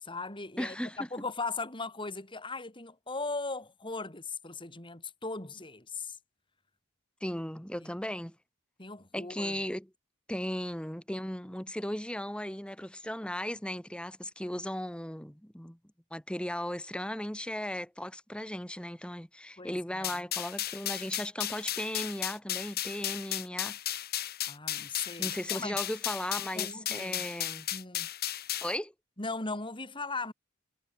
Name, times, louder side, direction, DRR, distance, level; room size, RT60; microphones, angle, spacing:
voice 1, 0.0-6.2 7.8-7.9 8.8-9.6 19.6-20.1 24.4-25.8 26.6-27.2 27.7-28.1 29.2-30.3, left 3 dB, 25° left, 3.5 m, -38 dB
voice 2, 0.6-1.0 7.2-8.4 9.1-9.9 10.3-15.8 16.1-23.8 25.2-27.7 28.6-28.9, left 1 dB, 5° left, 2.0 m, -36 dB
sound 1, 20.0-28.8, left 12 dB, 45° left, 1.6 m, -35 dB
head